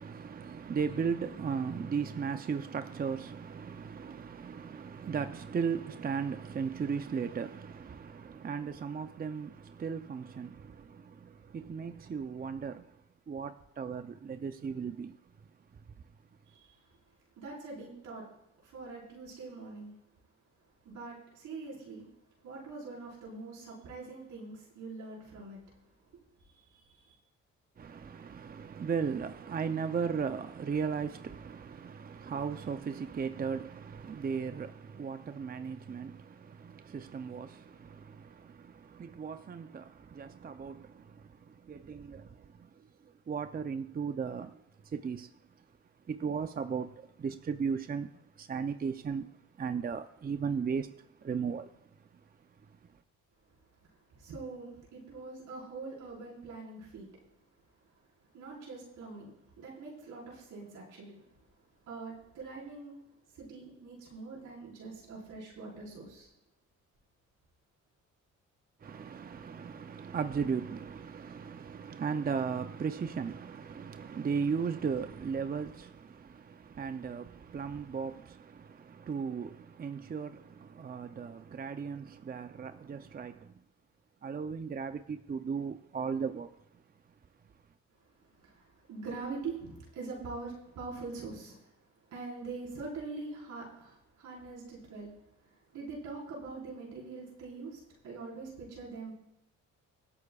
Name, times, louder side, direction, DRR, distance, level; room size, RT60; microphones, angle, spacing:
voice 1, 0.0-13.0 13.3-15.2 27.8-42.7 43.0-45.3 46.1-49.3 49.6-51.7 68.8-83.5 84.2-86.5, right 6 dB, 30° right, 0.6 m, -36 dB
voice 2, 17.4-18.2 18.6-19.9 20.8-22.0 22.4-25.6 26.7-27.1 54.2-57.1 58.3-59.3 59.6-61.2 61.9-63.0 63.3-66.3 88.4-88.6 88.9-91.6 92.1-95.1 95.7-99.1, right 3 dB, 75° right, 5.0 m, -43 dB
24.5 x 8.3 x 2.4 m
cardioid pair, 90°, 30 cm